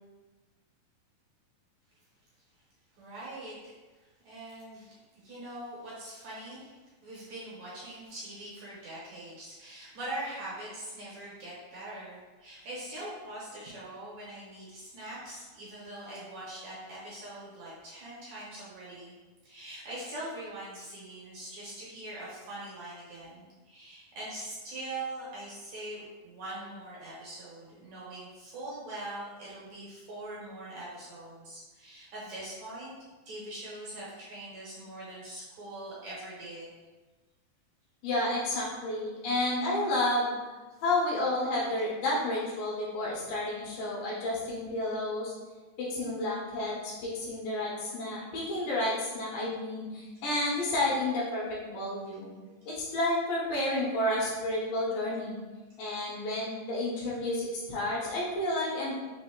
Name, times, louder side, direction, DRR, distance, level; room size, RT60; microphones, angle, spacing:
voice 1, 3.0-3.5 4.2-5.0 5.2-6.7 7.0-19.2 19.4-32.9 33.3-36.7, right 1 dB, 65° right, -7 dB, 2.0 m, -42 dB
voice 2, 38.0-40.3 40.8-45.3 45.8-52.4 52.7-55.4 55.8-59.0, left 1 dB, 75° left, -6 dB, 2.9 m, -31 dB
6.0 x 2.7 x 3.0 m, 1.3 s
omnidirectional pair, 4.0 m